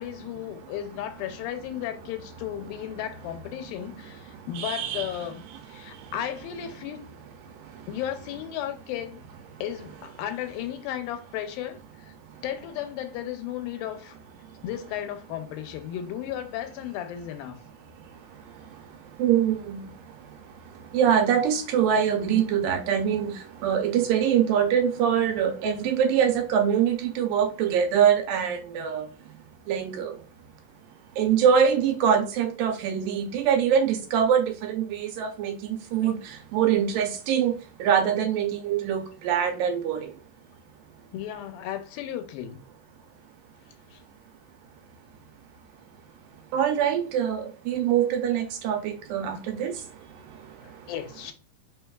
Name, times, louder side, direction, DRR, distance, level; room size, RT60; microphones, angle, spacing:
voice 1, 0.0-7.1 7.9-9.2 9.6-12.1 12.4-14.2 14.6-17.6 41.1-42.6 43.9-44.0 50.6-51.3, left 11 dB, 90° left, 2.4 m, -34 dB
voice 2, 4.6-5.1 19.2-19.8 20.9-23.3 23.6-29.0 29.7-30.1 31.2-35.5 35.9-36.2 36.5-37.5 37.8-40.0 46.5-49.7, right 8 dB, 80° right, 2.3 m, -23 dB
5.0 x 3.4 x 2.3 m
omnidirectional pair, 4.0 m